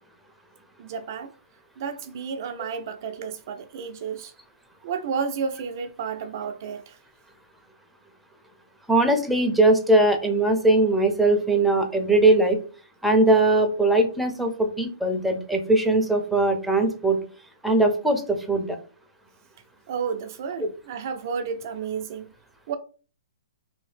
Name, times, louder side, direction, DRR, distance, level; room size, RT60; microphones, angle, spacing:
voice 1, 0.8-1.3 1.8-4.3 4.8-7.0 19.9-22.3 22.7-22.8, right 6 dB, 50° right, 0.3 m, -31 dB
voice 2, 8.9-12.6 13.0-17.2 17.6-18.8, right 2 dB, ahead, 0.5 m, -20 dB
2.8 x 2.6 x 3.2 m
hypercardioid pair, 145°, 2 cm